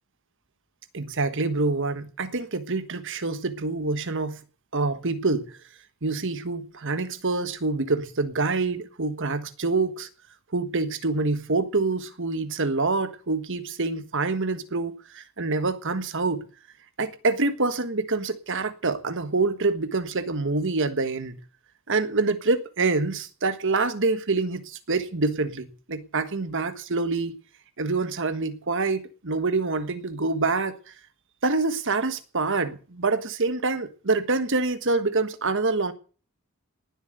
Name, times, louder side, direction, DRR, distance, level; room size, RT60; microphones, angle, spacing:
voice 1, 0.9-4.4 4.7-5.5 6.0-10.1 10.5-16.4 17.0-21.4 21.9-27.3 27.8-30.8 31.4-35.9, right 3 dB, 55° right, 1.4 m, -26 dB
19.0 x 7.7 x 7.9 m
head